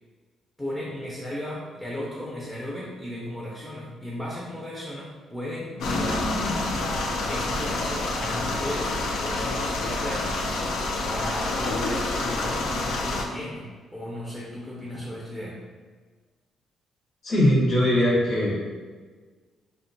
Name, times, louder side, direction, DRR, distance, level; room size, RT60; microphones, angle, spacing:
voice 1, 0.6-6.3 7.3-15.6, left 1 dB, 5° left, -5 dB, 0.5 m, -35 dB
sound 1, 5.8-13.2, left 2 dB, 80° left, 0.3 m, -28 dB
voice 2, 17.2-18.6, left 1 dB, 55° left, -5 dB, 0.8 m, -20 dB
2.4 x 2.1 x 2.6 m, 1.4 s
cardioid pair, 90°, 0 cm